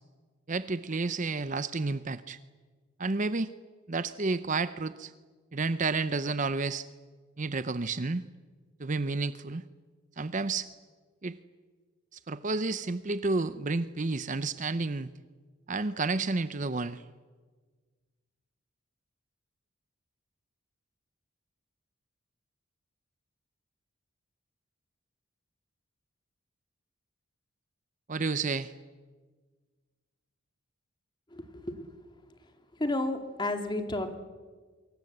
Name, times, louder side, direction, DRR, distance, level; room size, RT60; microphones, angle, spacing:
voice 1, 0.5-2.4 3.0-3.5 3.9-5.1 5.5-6.9 7.4-8.2 8.8-9.6 10.2-10.7 11.2-11.4 12.1-15.1 15.7-17.0 28.1-28.7, right 3 dB, 35° right, 13 dB, 0.7 m, -30 dB
voice 2, 31.3-31.9 32.8-34.2, left 2 dB, 20° left, 6 dB, 2.3 m, -32 dB
25.5 x 23.5 x 8.0 m, 1.5 s
head